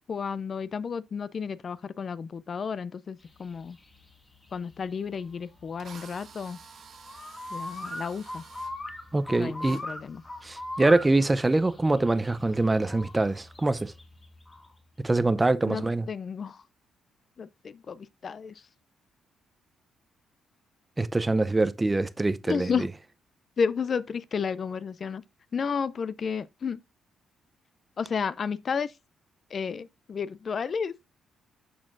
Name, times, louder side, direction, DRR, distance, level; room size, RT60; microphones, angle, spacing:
voice 1, 0.1-3.8 4.5-6.6 7.5-8.4 9.4-10.2 15.7-15.8 16.1-16.6 17.4-18.5 22.5-22.9 23.6-25.2 25.5-26.8 28.0-28.9 29.5-31.0, left 6 dB, 45° left, 0.4 m, -32 dB
sound 1, 3.3-14.7, left 1 dB, 20° left, 2.0 m, -41 dB
Drill, 5.1-5.2 5.8-8.7 9.6-9.8, right 6 dB, 60° right, 1.5 m, -49 dB
voice 2, 9.1-9.8 10.4-13.9 15.0-16.1 21.0-22.9, right 2 dB, 15° right, 0.5 m, -24 dB
12.5 x 4.3 x 2.5 m
cardioid pair, 90°, 0 cm